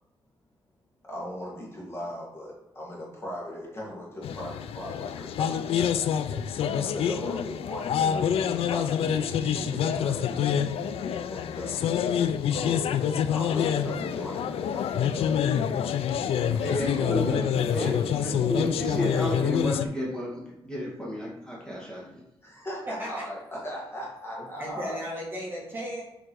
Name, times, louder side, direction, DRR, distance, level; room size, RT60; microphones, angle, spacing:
voice 1, 1.1-7.8 8.6-11.8 12.5-13.0 13.3-15.7 16.3-17.0 17.8-18.0 22.4-25.0, left 1 dB, 25° left, -5 dB, 2.0 m, -39 dB
sound 1, 4.2-19.9, left 8 dB, 80° left, 0.4 m, -27 dB
voice 2, 16.6-22.2, left 1 dB, 10° left, -5 dB, 2.1 m, -32 dB
voice 3, 22.9-23.2 24.4-26.0, equal, 20° right, -4 dB, 2.0 m, -35 dB
6.9 x 3.7 x 4.7 m, 0.94 s
wide cardioid pair, 155°, 10 cm